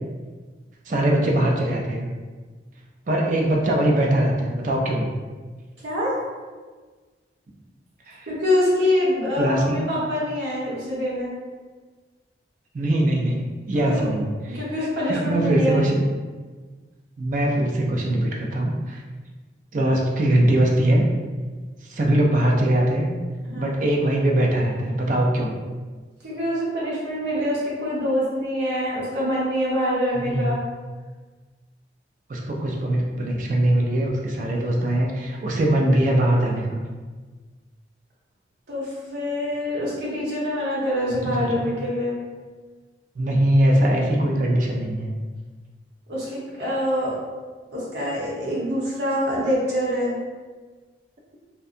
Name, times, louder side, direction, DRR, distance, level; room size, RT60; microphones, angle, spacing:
voice 1, 0.9-2.1 3.1-5.1 8.1-8.3 9.4-9.8 12.7-16.0 17.2-19.0 19.7-21.0 21.9-23.1 23.6-25.5 30.1-30.5 32.3-36.8 41.3-41.6 43.2-45.1, right 1 dB, 45° right, 0 dB, 0.4 m, -21 dB
voice 2, 5.8-6.2 8.3-11.3 13.7-14.1 14.5-15.8 23.4-23.7 26.2-30.6 38.7-42.2 46.1-47.2 47.7-50.2, left 1 dB, 85° right, -7 dB, 0.9 m, -25 dB
2.6 x 2.2 x 2.5 m, 1.4 s
head